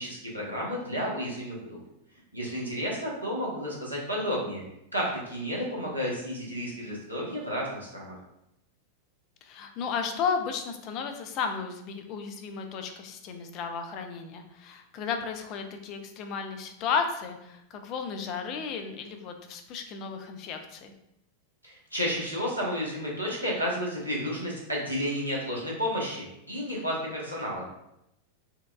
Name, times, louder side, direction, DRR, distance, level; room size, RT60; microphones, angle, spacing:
voice 1, 0.0-1.6 2.3-4.6 4.9-8.2 21.6-27.7, equal, 85° right, -4 dB, 1.0 m, -31 dB
voice 2, 9.4-20.9, left 6 dB, 40° left, 5 dB, 0.4 m, -33 dB
4.6 x 2.3 x 2.3 m, 0.82 s
figure-of-eight pair, 90°, 0 cm